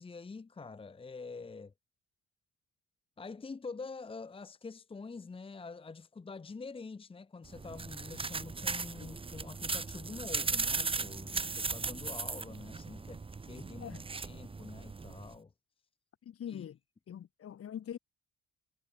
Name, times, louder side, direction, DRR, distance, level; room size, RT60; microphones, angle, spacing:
voice 1, 0.0-1.7 3.2-15.5 16.5-16.6, left 4 dB, 20° left, 1.3 m, -46 dB
sound 1, 7.4-15.3, right 4 dB, 20° right, 1.4 m, -37 dB
voice 2, 16.2-16.8 17.1-18.0, left 9 dB, 50° left, 4.9 m, -43 dB
cardioid pair, 170°, 29 cm